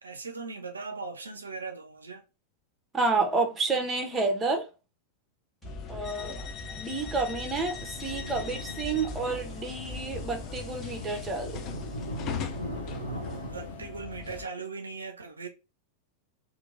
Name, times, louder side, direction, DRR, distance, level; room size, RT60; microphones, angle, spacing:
voice 1, 0.0-2.2 13.4-15.5, right 4 dB, 75° right, 0.4 m, -39 dB
voice 2, 2.9-4.7 5.9-6.4 6.7-11.6, right 3 dB, 15° right, 0.7 m, -29 dB
sound 1, 5.6-14.5, left 8 dB, 35° left, 0.4 m, -40 dB
sound 2, 5.6-11.3, right 2 dB, 10° left, 1.1 m, -46 dB
sound 3, 7.5-13.8, equal, 80° left, 0.7 m, -40 dB
2.9 x 2.5 x 2.4 m
figure-of-eight pair, 90°, 0 cm